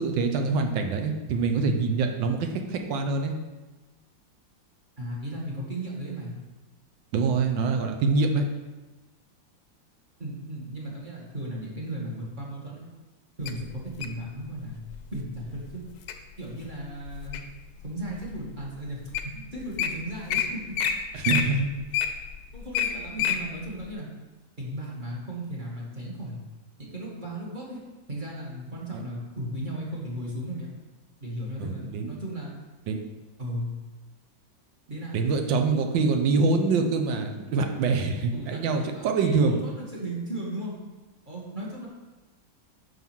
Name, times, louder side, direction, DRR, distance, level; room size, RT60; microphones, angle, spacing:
voice 1, 0.0-3.3 7.1-8.5 21.1-21.7 28.9-29.0 31.6-32.1 32.9-33.0 35.1-39.6, right 4 dB, 75° right, 5 dB, 1.4 m, -25 dB
voice 2, 5.0-6.3 10.2-12.8 13.4-14.8 15.1-15.8 16.4-17.4 17.8-20.8 22.5-24.1 24.6-26.4 26.8-27.8 28.1-30.7 31.2-32.6 33.4-33.7 34.9-35.2 38.3-40.8 41.3-41.9, right 1 dB, 25° right, -4 dB, 1.6 m, -36 dB
Wild animals, 13.5-14.2 14.9-15.2 15.7-16.1 16.7-17.6 18.2-18.3 18.9-19.0 19.1-19.3 19.6-19.9 20.3-20.4 20.7-20.9 21.2-23.4 23.8-23.9, left 9 dB, 70° left, 1.0 m, -27 dB
5.5 x 5.0 x 5.9 m, 1.2 s
omnidirectional pair, 2.1 m